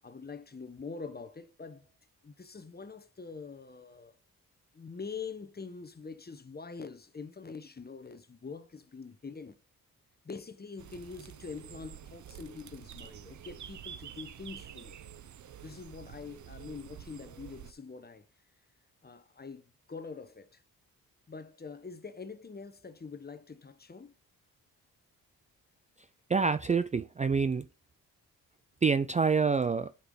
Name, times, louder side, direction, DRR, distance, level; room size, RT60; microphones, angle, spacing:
voice 1, 0.0-1.9 2.2-4.1 4.7-9.6 10.2-15.0 15.6-18.3 19.0-20.6 21.3-24.1, left 5 dB, 30° left, 1.1 m, -44 dB
sound 1, 10.8-17.7, right 9 dB, 55° right, 0.8 m, -48 dB
voice 2, 26.3-27.7 28.8-29.9, right 5 dB, 20° right, 0.4 m, -27 dB
8.0 x 5.8 x 3.9 m
cardioid pair, 65°, 34 cm